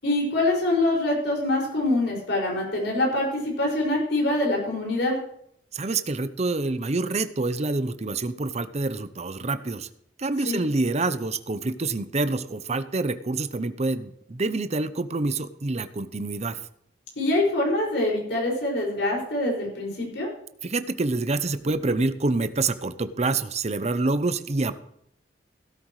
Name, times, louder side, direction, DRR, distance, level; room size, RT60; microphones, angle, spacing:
voice 1, 0.0-5.2 10.4-10.6 17.2-20.3, left 2 dB, 85° left, -2 dB, 5.8 m, -24 dB
voice 2, 5.7-9.9 10.2-16.6 20.6-24.8, right 3 dB, 40° right, 12 dB, 0.7 m, -27 dB
17.0 x 13.0 x 3.2 m, 0.70 s
head